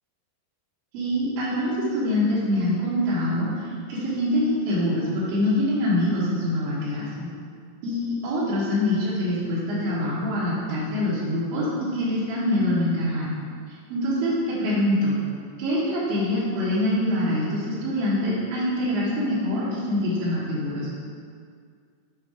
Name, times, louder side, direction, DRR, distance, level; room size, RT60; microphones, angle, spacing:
voice 1, 0.9-7.3 7.8-13.3 13.9-15.2 15.6-20.9, left 1 dB, 75° right, -9 dB, 3.6 m, -25 dB
8.3 x 5.0 x 4.8 m, 2.1 s
omnidirectional pair, 5.5 m